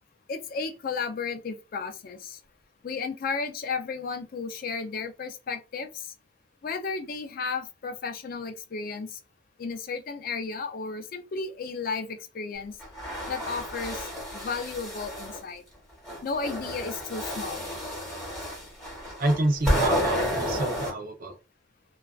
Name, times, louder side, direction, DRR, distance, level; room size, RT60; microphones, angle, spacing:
voice 1, 0.3-2.4 2.8-6.1 6.6-9.2 9.6-12.8 13.3-15.6 16.2-17.7, left 4 dB, 50° left, 0.4 m, -33 dB
sound 1, 12.8-15.4 16.0-20.9, equal, 5° left, 1.2 m, -31 dB
voice 2, 19.2-21.3, right 1 dB, 50° right, 0.5 m, -27 dB
2.3 x 2.3 x 2.2 m
head